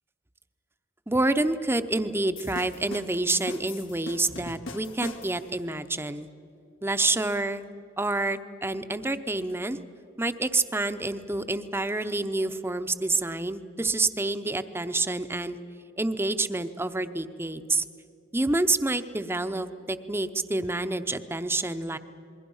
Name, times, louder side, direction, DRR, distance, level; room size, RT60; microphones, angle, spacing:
voice 1, 1.1-6.3 6.8-7.6 8.0-9.8 10.2-15.6 16.0-17.8 18.3-22.0, right 2 dB, 10° right, 10 dB, 0.7 m, -28 dB
sound 1, 2.4-5.6, left 3 dB, 90° left, 1.8 m, -41 dB
27.5 x 21.5 x 5.5 m, 2.6 s
head